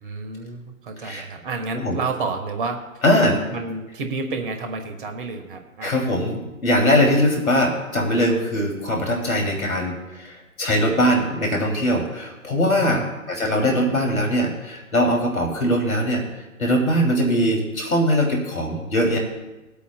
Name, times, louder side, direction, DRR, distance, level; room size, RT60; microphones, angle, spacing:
voice 1, 0.0-2.8 3.2-5.9 12.8-13.1, right 4 dB, 35° right, 5 dB, 1.2 m, -30 dB
voice 2, 3.0-3.4 5.8-13.0 13.4-16.2 16.6-19.2, equal, 75° left, 2 dB, 2.7 m, -21 dB
22.0 x 8.4 x 2.2 m, 1.0 s
figure-of-eight pair, 125°, 42 cm